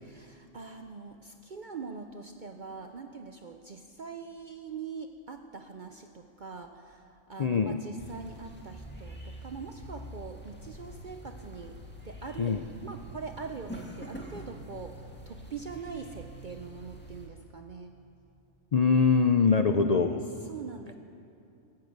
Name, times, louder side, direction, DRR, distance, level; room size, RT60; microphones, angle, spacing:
voice 1, 0.0-18.0 20.5-20.9, right 5 dB, 50° right, 6 dB, 0.6 m, -43 dB
voice 2, 7.4-7.8 12.4-12.6 18.7-20.2, left 5 dB, 75° left, 7 dB, 0.3 m, -23 dB
sound 1, 8.0-17.3, equal, 10° left, 1.7 m, -45 dB
15.0 x 10.5 x 8.0 m, 2.6 s
omnidirectional pair, 1.4 m